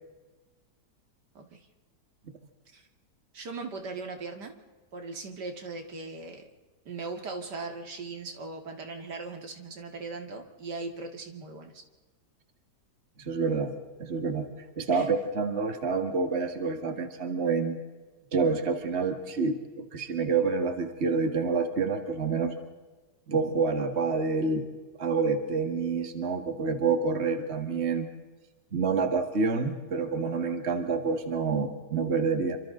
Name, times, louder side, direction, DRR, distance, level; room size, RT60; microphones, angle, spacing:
voice 1, 3.3-4.6 4.9-6.5 6.9-11.8 14.9-15.1, right 3 dB, 75° right, 5 dB, 2.6 m, -39 dB
voice 2, 13.2-13.7 14.0-17.8 18.3-22.5 23.3-24.7 25.0-28.1 28.7-32.6, right 4 dB, 40° right, 6 dB, 2.1 m, -28 dB
28.0 x 25.5 x 3.8 m, 1.2 s
omnidirectional pair, 1.8 m